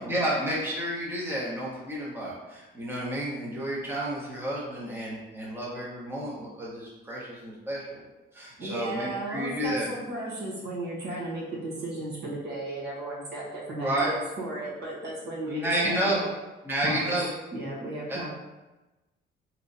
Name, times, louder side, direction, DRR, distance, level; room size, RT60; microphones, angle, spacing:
voice 1, 0.0-8.0 8.3-9.9 13.8-14.1 15.5-16.2 16.6-17.3 18.1-18.3, right 1 dB, 10° right, -6 dB, 1.1 m, -30 dB
voice 2, 8.6-16.3 16.8-17.2 17.5-18.3, right 1 dB, 55° right, -6 dB, 1.3 m, -35 dB
3.7 x 3.2 x 2.7 m, 1.1 s
cardioid pair, 90°, 20 cm